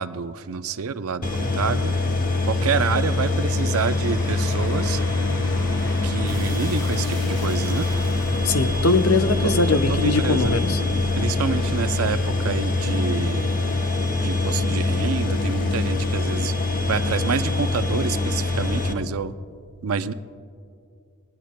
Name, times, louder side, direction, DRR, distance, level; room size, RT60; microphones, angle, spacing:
voice 1, 0.0-1.9 2.4-5.0 6.0-7.9 9.4-9.5 9.9-10.5 11.1-13.6 14.2-16.5 16.9-19.3 19.8-20.1, right 5 dB, 70° right, 12 dB, 0.5 m, -28 dB
sound 1, 1.2-18.9, left 2 dB, 40° left, 1.0 m, -24 dB
sound 2, 3.7-15.0, equal, 20° left, 4.2 m, -39 dB
voice 2, 8.4-10.8, left 3 dB, 75° left, 7 dB, 0.8 m, -21 dB
23.5 x 19.0 x 2.2 m, 2.4 s
head